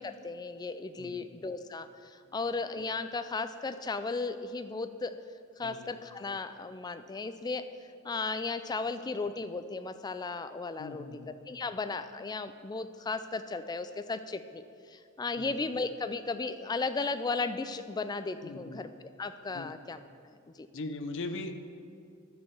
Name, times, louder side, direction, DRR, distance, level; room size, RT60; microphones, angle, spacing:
voice 1, 0.0-5.1 5.6-7.7 8.0-11.0 11.5-14.6 14.9-18.9 19.2-20.0 20.6-20.7, left 3 dB, 20° left, 11 dB, 0.3 m, -35 dB
voice 2, 5.6-5.9 10.8-11.3 15.4-15.6 18.4-18.8 19.5-19.8 20.7-21.5, left 2 dB, 60° left, 8 dB, 0.6 m, -40 dB
12.0 x 4.4 x 6.8 m, 2.4 s
head